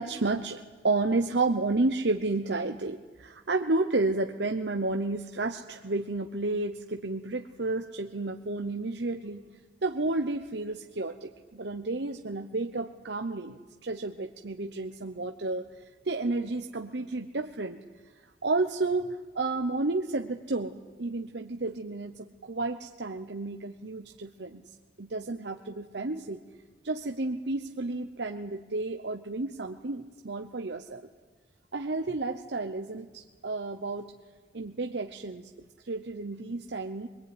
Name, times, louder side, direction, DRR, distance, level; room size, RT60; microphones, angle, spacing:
voice 1, 0.0-9.5 9.8-15.7 16.0-17.8 18.4-24.6 25.0-26.4 26.8-31.1 31.7-34.1 34.5-35.5 35.8-37.1, right 2 dB, 65° right, 5 dB, 0.9 m, -31 dB
24.0 x 22.5 x 9.7 m, 1.4 s
head